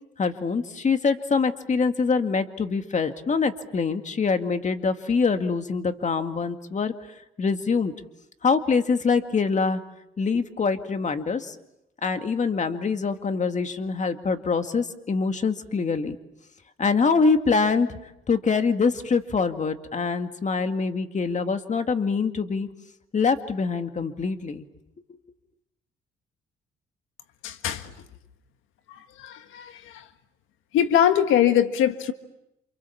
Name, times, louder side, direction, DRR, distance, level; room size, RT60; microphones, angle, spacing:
voice 1, 0.2-6.9 7.4-7.9 8.4-9.8 10.2-11.6 12.0-16.2 16.8-18.0 18.3-22.7 23.1-24.7, left 5 dB, 35° left, 7 dB, 2.1 m, -24 dB
voice 2, 27.4-27.9 28.9-30.1 30.7-32.1, left 10 dB, 90° left, 8 dB, 1.6 m, -23 dB
28.5 x 28.0 x 7.2 m, 0.84 s
cardioid pair, 90°, 20 cm